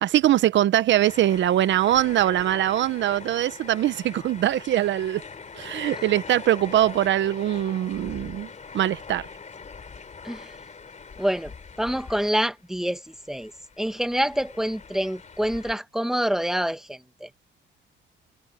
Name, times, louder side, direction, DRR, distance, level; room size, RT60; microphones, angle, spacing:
voice 1, 0.0-5.2 5.6-8.5 8.7-9.3, right 12 dB, 70° right, 0.8 m, -22 dB
sound 1, 0.9-12.8 13.1-15.7, left 5 dB, 35° left, 3.1 m, -42 dB
voice 2, 10.2-10.6 11.2-11.5 11.8-13.5 13.8-17.3, equal, ahead, 1.5 m, -26 dB
cardioid pair, 90°, 20 cm